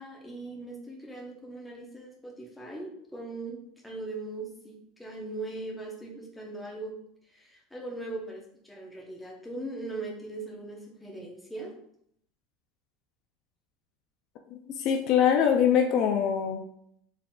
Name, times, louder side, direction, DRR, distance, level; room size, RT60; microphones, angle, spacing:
voice 1, 0.0-7.0 7.3-11.8, right 2 dB, 5° left, -2 dB, 0.7 m, -40 dB
voice 2, 14.5-16.6, left 8 dB, 50° left, 4 dB, 0.3 m, -23 dB
4.0 x 3.7 x 2.2 m, 0.71 s
supercardioid pair, 145°, 0 cm